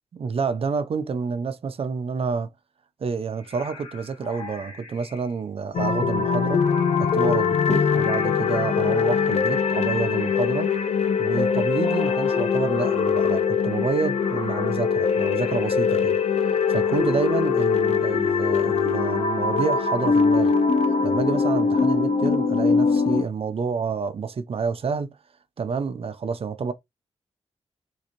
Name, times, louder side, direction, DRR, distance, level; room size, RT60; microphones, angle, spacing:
voice 1, 0.1-2.5 3.0-6.6 7.0-10.7 11.2-16.2 16.7-20.5 21.0-25.2 25.6-26.7, right 5 dB, 60° right, 0.5 m, -28 dB
sound 1, 3.4-5.4 5.9-13.4 13.8-15.8 16.6-17.8, left 4 dB, 90° left, 1.5 m, -41 dB
sound 2, 5.7-23.2, left 6 dB, 70° left, 0.6 m, -22 dB
3.9 x 2.6 x 2.9 m
wide cardioid pair, 110°, 11 cm